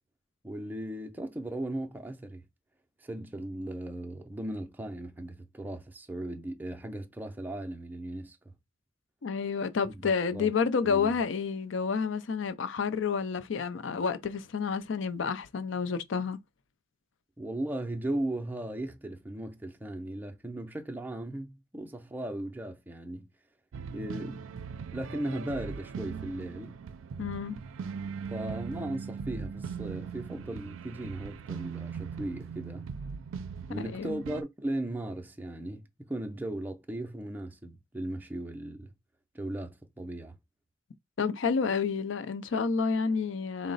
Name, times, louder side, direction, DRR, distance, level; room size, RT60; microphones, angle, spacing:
voice 1, 0.4-2.4 3.0-8.4 9.9-10.0 10.3-10.5 10.8-11.1 17.4-23.3 23.9-24.5 24.9-26.8 28.3-32.9 33.7-38.9 39.3-40.4, right 1 dB, 10° right, 0.4 m, -37 dB
voice 2, 9.2-16.4 27.2-27.6 33.7-34.2 41.2-43.7, left 5 dB, 70° left, 0.5 m, -30 dB
sound 1, 23.7-34.4, right 6 dB, 90° right, 0.4 m, -40 dB
3.9 x 2.0 x 3.9 m
head